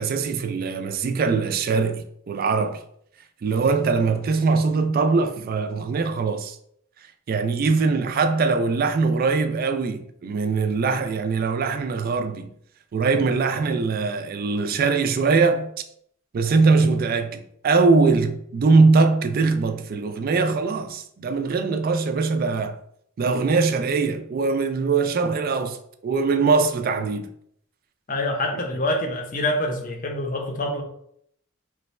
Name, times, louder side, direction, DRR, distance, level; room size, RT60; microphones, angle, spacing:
voice 1, 0.0-2.8 3.4-6.6 7.3-12.5 12.9-15.7 16.3-22.8 23.2-27.3, right 4 dB, 45° right, 0.3 m, -22 dB
voice 2, 28.1-30.8, left 1 dB, 40° left, 0.6 m, -26 dB
3.1 x 2.1 x 4.2 m
head